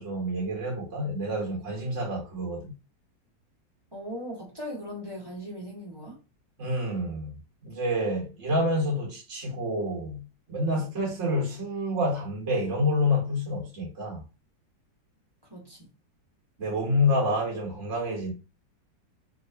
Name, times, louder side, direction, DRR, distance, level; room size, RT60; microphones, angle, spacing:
voice 1, 0.0-2.7 6.6-14.2 16.6-18.3, left 1 dB, 45° right, 1.4 m, -28 dB
voice 2, 3.9-6.2 10.7-10.9 15.5-15.9, equal, 15° right, 1.2 m, -39 dB
3.8 x 3.0 x 2.7 m
omnidirectional pair, 2.0 m